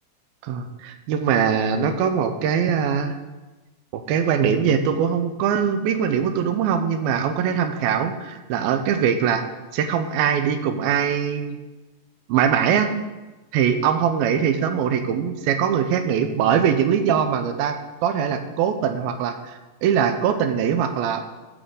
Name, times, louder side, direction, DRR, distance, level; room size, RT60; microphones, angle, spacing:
voice 1, 0.4-3.2 3.9-9.4 9.7-11.6 12.3-12.9 13.5-19.4 19.8-21.2, right 8 dB, 90° right, 8 dB, 2.5 m, -22 dB
15.0 x 6.2 x 3.8 m, 1.1 s
omnidirectional pair, 4.3 m